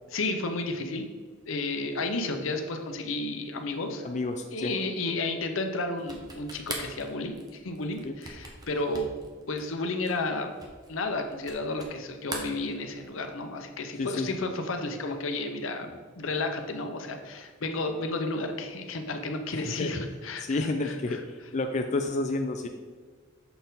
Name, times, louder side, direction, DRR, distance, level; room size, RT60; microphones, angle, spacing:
voice 1, 0.1-1.1 1.5-4.1 4.5-9.1 9.5-10.5 10.9-15.9 16.2-21.2, left 2 dB, 70° left, 6 dB, 0.7 m, -32 dB
voice 2, 4.0-4.7 8.0-8.1 14.0-14.3 19.5-19.9 20.4-21.2 21.5-22.7, left 2 dB, 35° left, 4 dB, 0.4 m, -30 dB
sound 1, 6.0-12.0 12.2-13.3, right 2 dB, 20° right, 0.9 m, -41 dB
6.7 x 4.2 x 3.9 m, 1.5 s
head